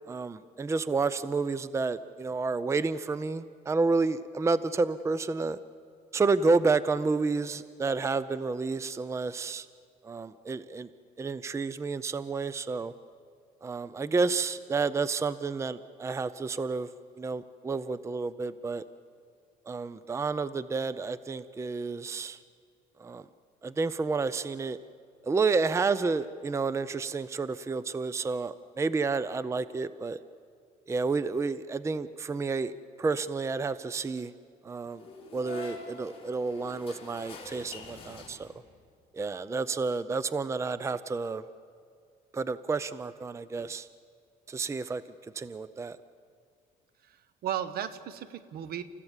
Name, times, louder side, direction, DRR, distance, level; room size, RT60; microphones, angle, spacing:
voice 1, 0.1-5.6 6.1-9.7 10.0-10.9 11.2-12.9 13.6-16.9 17.2-18.8 19.7-22.4 23.0-23.2 23.6-24.8 25.2-30.2 30.9-32.7 33.0-34.3 34.6-35.0 35.3-38.5 39.1-41.4 42.3-43.9 44.5-45.0 45.4-46.0, right 4 dB, 15° right, 15 dB, 0.5 m, -30 dB
sound 1, 34.9-38.8, left 4 dB, 35° left, 4.0 m, -46 dB
voice 2, 47.0-48.8, right 10 dB, 65° right, 14 dB, 1.1 m, -35 dB
29.0 x 15.0 x 7.3 m, 2.3 s
cardioid pair, 110°, 17 cm